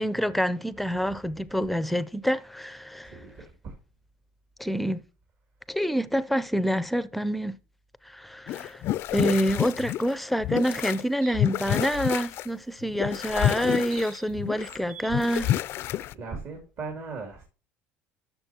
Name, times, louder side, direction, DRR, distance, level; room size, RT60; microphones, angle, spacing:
voice 1, 0.0-3.2 4.6-5.0 5.7-7.6 8.1-8.8 9.1-15.5, equal, ahead, 0.5 m, -27 dB
sound 1, 8.5-11.0 11.3-12.5 12.8-14.8 15.1-16.1, left 13 dB, 55° left, 0.4 m, -29 dB
sound 2, 10.8-11.5 13.2-14.4 14.6-15.2, right 7 dB, 75° right, 2.2 m, -47 dB
voice 2, 16.1-17.4, right 4 dB, 55° right, 2.6 m, -38 dB
12.0 x 6.7 x 2.9 m
cardioid pair, 135°, 5 cm